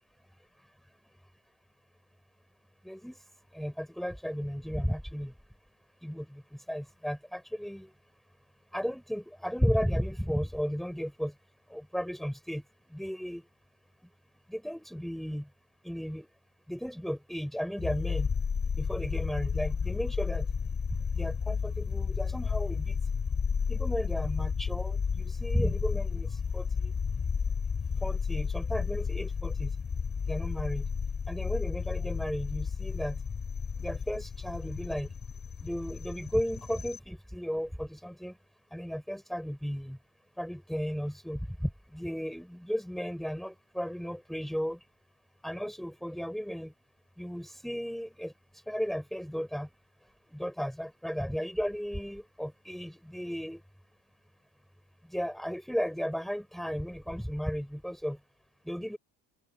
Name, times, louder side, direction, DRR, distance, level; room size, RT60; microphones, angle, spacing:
voice 1, 2.8-3.2 3.5-5.3 6.0-6.4 6.7-7.9 8.7-11.3 11.7-12.6 12.9-13.4 14.5-15.5 15.8-16.3 16.7-18.3 18.8-20.5 21.1-23.0 23.7-26.9 28.0-29.7 30.3-30.8 31.3-33.2 33.8-35.1 35.6-38.3 38.7-40.0 40.4-44.8 45.4-46.7 47.2-48.3 48.7-49.7 50.3-53.6 55.1-58.2 58.7-59.0, equal, ahead, 7.5 m, -34 dB
sound 1, 17.8-37.0, left 6 dB, 25° left, 6.6 m, -32 dB
open air
cardioid pair, 130°, 40 cm